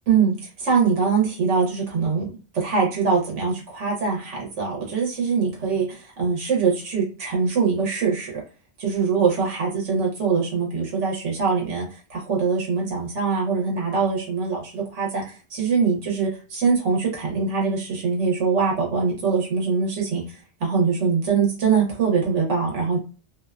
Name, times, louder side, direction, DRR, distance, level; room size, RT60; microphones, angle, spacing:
voice 1, 0.1-5.9 6.2-8.4 8.8-23.0, right 5 dB, 75° right, -1 dB, 1.1 m, -23 dB
2.5 x 2.2 x 2.3 m, 0.35 s
omnidirectional pair, 1.2 m